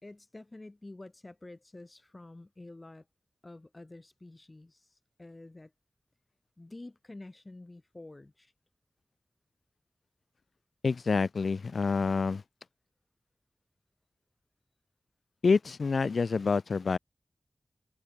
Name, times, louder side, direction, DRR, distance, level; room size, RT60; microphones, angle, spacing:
voice 1, 0.0-3.0 3.4-5.7 6.6-8.5, left 2 dB, 30° left, 2.8 m, -49 dB
voice 2, 10.8-12.4 15.4-17.0, left 4 dB, 70° left, 1.4 m, -27 dB
wide cardioid pair, 85°, 0 cm